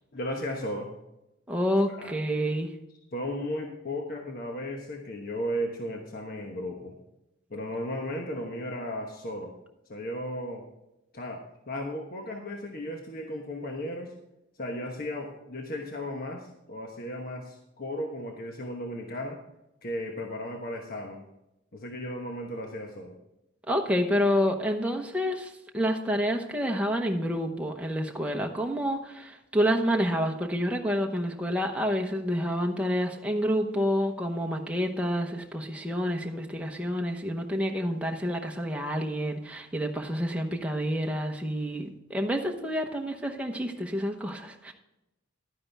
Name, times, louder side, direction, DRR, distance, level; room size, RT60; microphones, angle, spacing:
voice 1, 0.1-0.9 1.9-2.2 3.1-6.9 7.5-9.5 9.9-10.7 11.1-14.1 14.6-19.4 19.8-21.2 21.7-23.2, equal, 45° left, 2 dB, 1.2 m, -35 dB
voice 2, 1.5-2.7 23.7-44.7, equal, 5° right, 1 dB, 0.9 m, -28 dB
11.5 x 9.6 x 3.5 m, 0.89 s
head